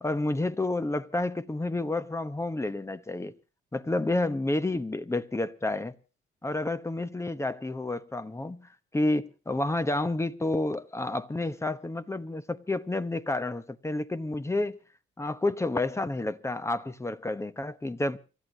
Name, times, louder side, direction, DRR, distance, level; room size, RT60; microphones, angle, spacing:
voice 1, 0.0-3.3 3.7-5.9 6.4-14.8 15.2-18.2, left 2 dB, 15° left, 1.0 m, -30 dB
29.0 x 13.0 x 2.9 m
cardioid pair, 90°, 20 cm